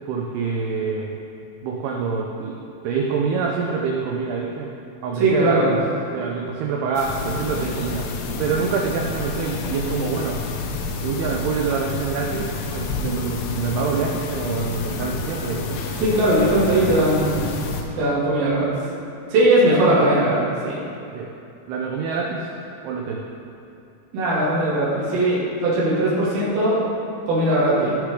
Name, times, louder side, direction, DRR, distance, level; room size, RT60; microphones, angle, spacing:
voice 1, 0.1-1.2 1.6-4.7 5.0-5.8 6.1-8.1 8.4-10.4 11.0-12.5 12.7-15.8 19.6-20.0 21.1-21.3 21.7-22.5 22.8-23.2, right 5 dB, 85° right, -1 dB, 2.3 m, -26 dB
voice 2, 5.2-5.7 16.0-17.5 18.0-18.7 19.3-20.8 24.1-26.8 27.3-27.9, right 1 dB, 55° right, -8 dB, 4.1 m, -19 dB
sound 1, 7.0-17.8, left 3 dB, 75° left, 2.5 m, -29 dB
17.5 x 6.6 x 3.8 m, 2.7 s
omnidirectional pair, 5.6 m